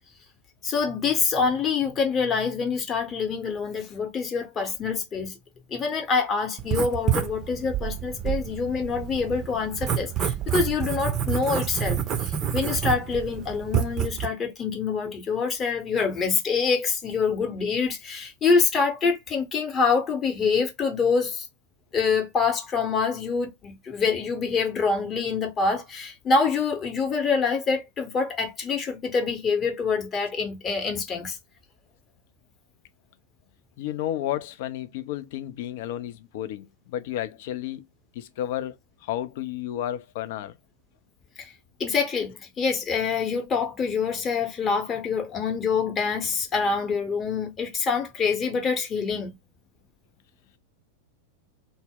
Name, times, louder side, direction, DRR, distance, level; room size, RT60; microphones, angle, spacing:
voice 1, 0.6-5.4 5.7-21.5 21.9-31.4 41.4-41.5 41.8-49.3, left 5 dB, 25° left, 0.8 m, -26 dB
Writing, 6.6-14.3, right 9 dB, 30° right, 0.5 m, -28 dB
voice 2, 33.8-37.9 38.1-38.8 39.0-40.5, left 12 dB, 50° left, 0.4 m, -32 dB
2.0 x 2.0 x 3.6 m
figure-of-eight pair, 90°, 0 cm